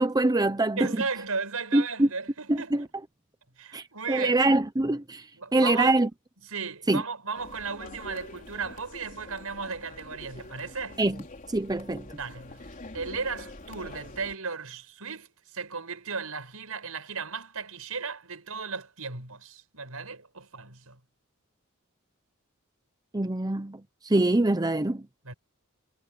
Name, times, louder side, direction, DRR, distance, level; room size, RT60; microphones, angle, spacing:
voice 1, 0.0-0.9 1.7-2.1 2.5-2.9 3.7-5.2 5.5-6.1 6.9-7.0 11.0-11.2 11.5-12.1 23.1-25.1, right 2 dB, 20° right, 0.8 m, -24 dB
voice 2, 0.8-2.9 3.6-4.4 5.3-6.0 6.5-11.0 12.2-12.7 12.9-21.0 25.2-25.3, right 4 dB, 80° right, 5.7 m, -35 dB
sound 1, 7.4-14.3, left 2 dB, 40° left, 3.9 m, -45 dB
head